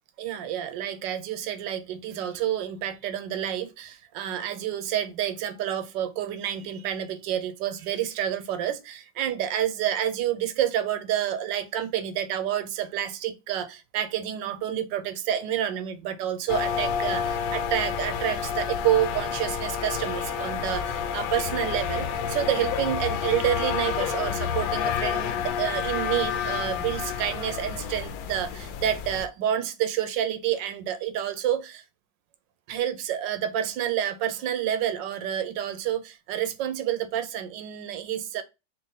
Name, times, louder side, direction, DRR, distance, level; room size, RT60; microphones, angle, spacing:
voice 1, 0.2-31.8 32.7-38.4, right 10 dB, 75° right, 1.3 m, -29 dB
sound 1, 16.5-29.3, left 7 dB, 80° left, 1.3 m, -29 dB
4.5 x 3.0 x 3.9 m
omnidirectional pair, 2.1 m